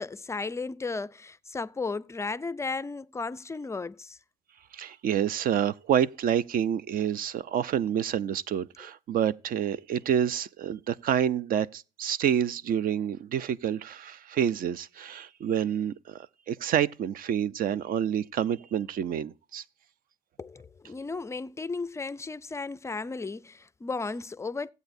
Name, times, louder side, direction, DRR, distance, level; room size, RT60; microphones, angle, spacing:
voice 1, 0.0-4.2 20.4-24.7, left 4 dB, 15° left, 0.4 m, -35 dB
voice 2, 4.7-19.6, right 9 dB, 60° right, 0.5 m, -28 dB
16.5 x 8.1 x 2.6 m
cardioid pair, 110°, 17 cm